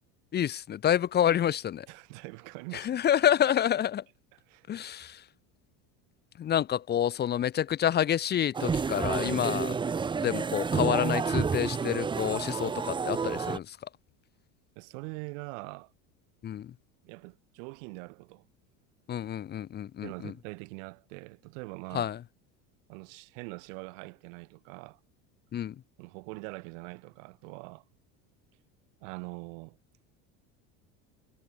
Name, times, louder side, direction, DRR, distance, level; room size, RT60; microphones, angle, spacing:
voice 1, 0.3-1.9 2.7-4.0 4.7-5.2 6.4-9.8 10.2-13.8 16.4-16.7 19.1-20.3 21.9-22.2 25.5-25.7, left 10 dB, 25° left, 0.8 m, -28 dB
voice 2, 1.9-3.0 4.3-4.7 14.7-15.9 17.0-18.4 20.0-22.1 22.9-25.0 26.0-27.8 29.0-29.8, right 33 dB, 75° right, 5.2 m, -43 dB
sound 1, 8.5-13.6, right 5 dB, 15° right, 0.7 m, -30 dB
cardioid pair, 140°, 38 cm